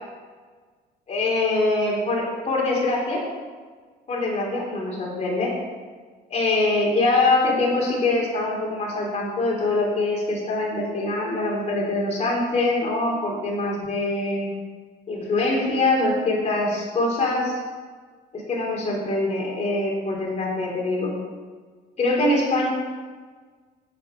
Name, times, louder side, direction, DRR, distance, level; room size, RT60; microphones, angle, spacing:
voice 1, 1.1-3.2 4.1-5.5 6.3-14.5 15.1-17.5 18.3-21.1 22.0-22.7, left 2 dB, 40° left, -4 dB, 3.6 m, -23 dB
8.1 x 7.7 x 6.5 m, 1.5 s
cardioid pair, 110°, 17 cm